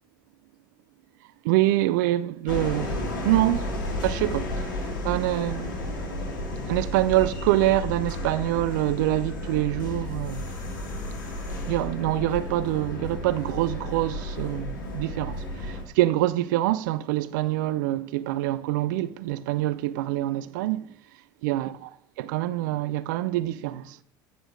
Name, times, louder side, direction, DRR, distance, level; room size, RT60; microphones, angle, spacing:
voice 1, 1.4-3.7 4.0-4.7 5.0-5.8 6.7-10.6 11.7-20.9 21.4-21.7 22.3-24.0, right 15 dB, 70° right, 0.4 m, -25 dB
sound 1, 2.5-15.8, left 1 dB, 75° left, 1.6 m, -32 dB
8.0 x 5.0 x 3.8 m
hypercardioid pair, 70°, 11 cm